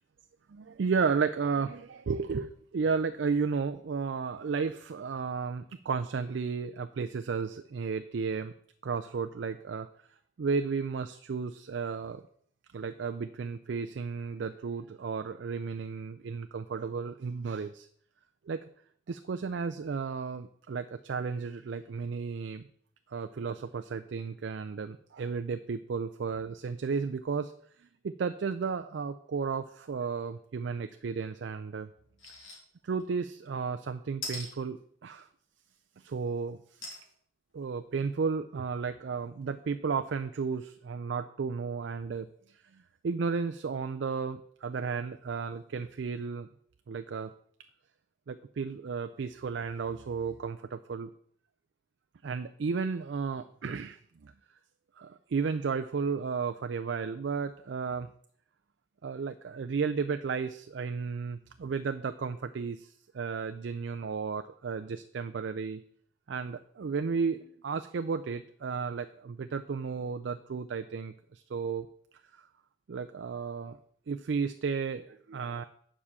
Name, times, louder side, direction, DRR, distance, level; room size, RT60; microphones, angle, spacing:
voice 1, 0.5-8.5 8.8-9.9 10.4-12.2 12.7-17.9 18.5-18.6 19.1-22.6 23.1-27.5 28.0-31.9 32.8-35.3 36.0-36.6 37.5-42.3 43.0-46.5 46.9-47.3 48.3-51.1 52.2-54.3 55.0-58.1 59.0-65.8 66.3-71.9 72.9-73.8 74.1-75.6, right 5 dB, 60° right, 9 dB, 0.4 m, -33 dB
sound 1, 32.2-32.6 33.0-33.1 34.2-34.5 36.8-37.0 37.6-37.7 38.0-38.1, left 2 dB, 85° left, 2.7 m, -39 dB
7.3 x 4.9 x 7.2 m, 0.63 s
head